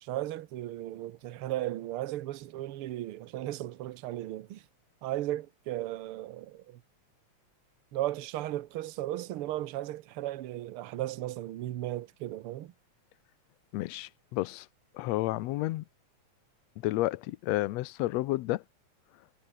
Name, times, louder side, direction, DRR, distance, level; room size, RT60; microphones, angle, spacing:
voice 1, 0.0-4.6 5.0-6.8 7.9-12.7, right 14 dB, 65° right, 1.4 m, -36 dB
voice 2, 13.7-14.7 14.9-15.8 16.8-18.6, left 17 dB, 75° left, 1.7 m, -31 dB
omnidirectional pair, 3.5 m